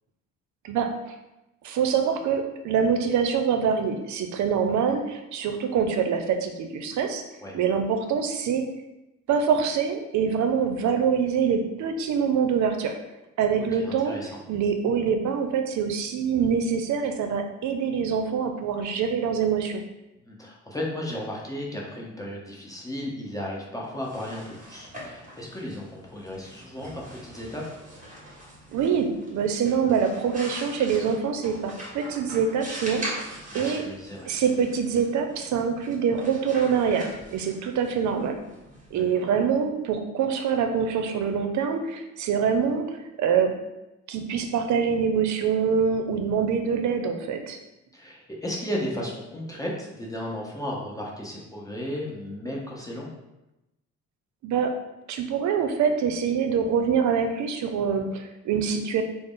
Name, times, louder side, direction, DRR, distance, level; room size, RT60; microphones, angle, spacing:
voice 1, 0.6-1.1 1.6-7.2 7.5-8.7 9.3-13.0 13.4-14.2 14.5-19.8 28.7-33.8 34.3-38.4 38.9-43.5 44.1-47.6 54.4-54.7 55.1-59.0, right 6 dB, 70° right, 6 dB, 0.5 m, -25 dB
voice 2, 13.6-14.3 20.3-27.6 33.5-34.3 38.9-39.0 47.9-53.1, left 1 dB, 10° left, -3 dB, 0.8 m, -34 dB
sound 1, 23.9-39.6, right 1 dB, 25° right, 1.3 m, -42 dB
3.7 x 2.0 x 3.6 m, 0.96 s
cardioid pair, 90°, 30 cm